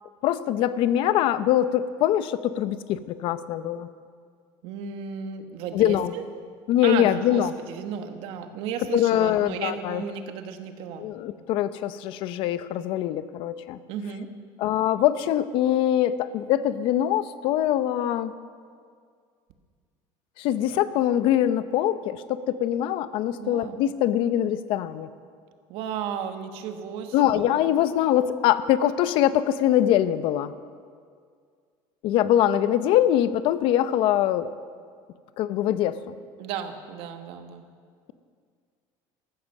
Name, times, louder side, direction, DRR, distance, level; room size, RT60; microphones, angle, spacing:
voice 1, 0.2-3.9 5.7-6.1 6.7-7.5 8.9-10.0 11.0-13.8 14.6-18.3 20.4-25.1 27.1-30.5 32.0-34.5 35.4-36.1, left 11 dB, 60° left, 14 dB, 0.7 m, -23 dB
voice 2, 4.6-6.2 6.8-11.1 13.9-14.3 23.4-23.8 25.7-27.6 36.4-37.7, right 7 dB, 65° right, 7 dB, 1.4 m, -34 dB
14.5 x 13.5 x 6.6 m, 2.1 s
cardioid pair, 150°, 10 cm